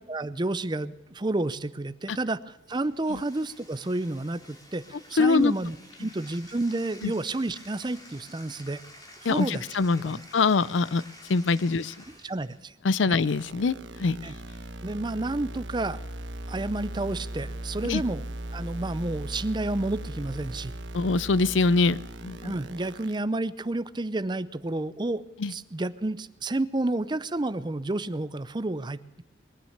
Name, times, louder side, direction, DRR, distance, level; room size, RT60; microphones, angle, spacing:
voice 1, 0.1-4.8 5.1-8.8 9.2-9.6 10.0-10.2 12.1-12.7 13.1-13.2 14.2-14.3 14.8-16.0 16.5-18.2 18.5-20.7 22.4-29.2, right 2 dB, 25° right, 15 dB, 0.6 m, -30 dB
Bathtub (filling or washing), 2.6-12.6, left 1 dB, 20° left, 3.2 m, -51 dB
voice 2, 5.2-5.5 7.0-7.1 9.2-11.0 11.3-11.9 12.8-14.2 17.9-18.0 20.9-22.6 25.4-25.5, left 4 dB, 85° left, 19 dB, 0.5 m, -24 dB
sound 1, 13.2-23.1, right 1 dB, 85° right, 1.1 m, -38 dB
21.5 x 9.6 x 6.7 m, 1.1 s
head